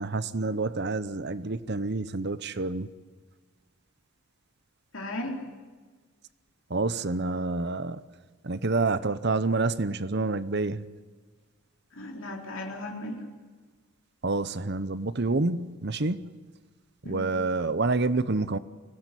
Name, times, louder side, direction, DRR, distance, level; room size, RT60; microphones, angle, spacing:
voice 1, 0.0-2.9 6.7-8.0 8.4-10.8 14.2-16.3 17.1-18.6, right 3 dB, 50° right, 0.8 m, -28 dB
voice 2, 4.9-5.5 11.9-13.2 17.0-17.3, left 1 dB, 60° left, 3.8 m, -36 dB
24.0 x 17.0 x 9.9 m
head